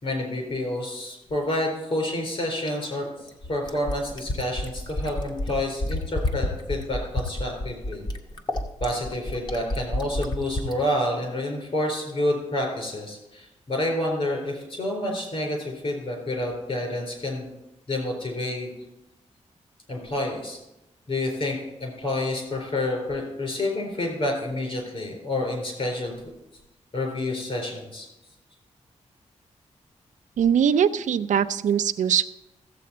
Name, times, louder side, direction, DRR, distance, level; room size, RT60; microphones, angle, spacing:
voice 1, 0.0-3.0 3.5-8.0 8.8-17.5 17.9-18.7 19.9-20.6 21.1-26.2 26.9-28.1, left 1 dB, 50° left, 1 dB, 4.0 m, -28 dB
Fill (with liquid), 2.7-10.8 12.1-12.2, left 1 dB, 35° left, 1.0 m, -29 dB
voice 2, 30.4-32.3, right 8 dB, 85° right, 12 dB, 0.4 m, -21 dB
14.5 x 7.6 x 4.3 m, 0.93 s
wide cardioid pair, 135°, 12 cm